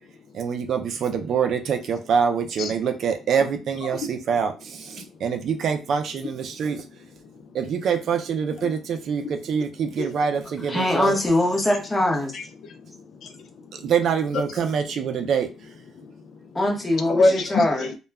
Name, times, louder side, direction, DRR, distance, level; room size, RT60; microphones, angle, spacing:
voice 1, 0.3-6.8 7.5-11.2 13.7-15.5, right 6 dB, 60° right, 0.4 m, -25 dB
voice 2, 10.7-12.3 16.5-17.9, left 1 dB, 15° left, 0.8 m, -22 dB
voice 3, 12.3-13.7 14.3-14.4 16.0-16.2 17.1-18.0, left 2 dB, 60° left, 0.4 m, -26 dB
2.2 x 2.1 x 3.4 m
cardioid pair, 125°, 0 cm